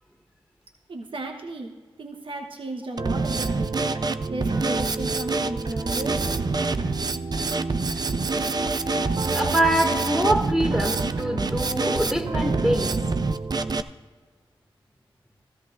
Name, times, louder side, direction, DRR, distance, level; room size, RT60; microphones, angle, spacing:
voice 1, 0.9-3.8 4.3-6.5, right 2 dB, 65° right, 3 dB, 1.0 m, -35 dB
Drum kit, 3.0-13.8, right 3 dB, 45° right, 0.5 m, -26 dB
sound 1, 3.4-3.5 3.9-4.1 4.5-4.6 5.1-5.2 5.6-5.8 6.2-6.4 6.8-6.9 7.3-7.5 7.9-8.6 8.9-9.1 9.4-9.6 10.1-10.2 10.6-10.8 11.2-11.3 11.8-11.9 12.2-12.3 12.6-12.8, right 2 dB, 85° right, 4.1 m, -46 dB
voice 2, 9.3-12.9, right 1 dB, 5° right, -1 dB, 2.0 m, -24 dB
16.5 x 13.0 x 2.6 m, 1.4 s
cardioid pair, 45°, 10 cm